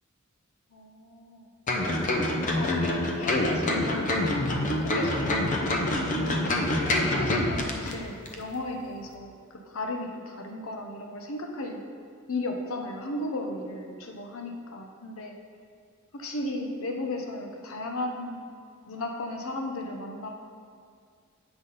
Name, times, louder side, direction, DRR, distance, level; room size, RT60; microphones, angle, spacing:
voice 1, 0.7-1.5 2.3-6.4 6.9-11.8 12.3-15.4 16.1-18.5 18.9-20.3, left 1 dB, 75° left, 2 dB, 0.7 m, -35 dB
sound 1, 1.7-7.9 8.3-8.4, left 1 dB, 35° left, 0.6 m, -26 dB
7.9 x 3.8 x 5.5 m, 2.2 s
head